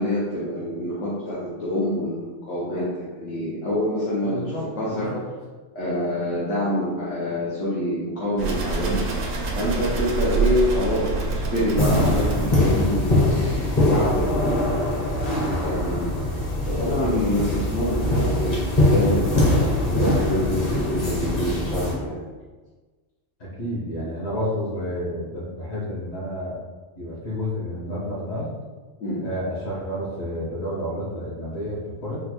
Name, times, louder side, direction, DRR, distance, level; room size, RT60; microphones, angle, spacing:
voice 1, 0.0-5.1 5.7-9.1 9.6-22.2 29.0-29.2, left 1 dB, 80° left, -9 dB, 1.1 m, -26 dB
voice 2, 4.2-5.2 16.8-17.2 23.4-26.6 26.9-28.5 29.2-32.2, equal, 60° left, -7 dB, 1.4 m, -30 dB
sound 1, 8.4-13.4, right 4 dB, 65° right, 0.8 m, -26 dB
sound 2, 11.8-21.9, left 1 dB, 40° left, 0.8 m, -22 dB
4.2 x 2.1 x 2.9 m, 1.3 s
omnidirectional pair, 1.3 m